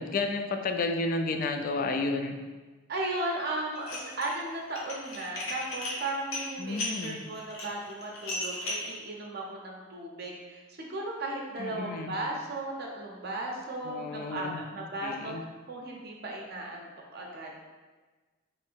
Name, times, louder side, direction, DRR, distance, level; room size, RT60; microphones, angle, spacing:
voice 1, 0.0-2.4 6.6-7.2 11.6-12.2 13.8-15.4, left 3 dB, 45° left, 6 dB, 0.3 m, -32 dB
voice 2, 2.9-15.3 15.7-17.6, right 2 dB, 50° right, -1 dB, 0.6 m, -36 dB
Dishes pots and pans, 3.7-4.4 4.7-8.9, left 2 dB, 85° left, 0.9 m, -36 dB
3.1 x 2.7 x 4.3 m, 1.3 s
head